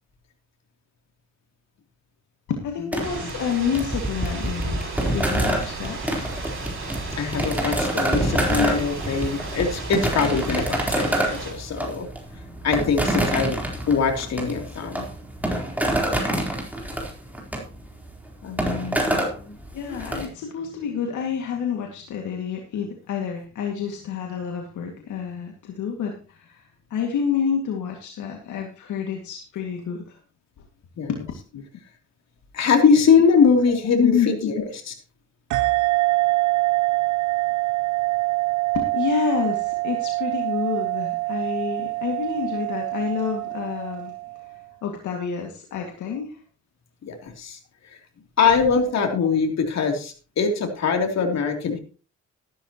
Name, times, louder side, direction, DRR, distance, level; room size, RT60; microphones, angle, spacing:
voice 1, 2.5-6.0 19.0-19.1 19.7-26.6 26.9-30.2 31.1-31.2 31.5-31.6 34.0-34.5 38.7-44.1 44.8-46.4, left 7 dB, 80° left, 2 dB, 2.2 m, -28 dB
sound 1, 2.9-20.2, right 1 dB, 5° right, 3.9 m, -27 dB
sound 2, 3.0-11.5, right 4 dB, 45° right, 6.2 m, -35 dB
voice 2, 7.2-12.1 12.6-13.6 13.9-15.1 16.3-16.4 18.4-19.5 31.0-31.1 32.5-34.9 47.0-47.6 48.4-51.8, left 5 dB, 60° left, 3 dB, 3.2 m, -22 dB
sound 3, 35.5-44.6, right 22 dB, 80° right, 0.7 m, -25 dB
13.5 x 12.0 x 3.0 m, 0.36 s
cardioid pair, 90°, 30 cm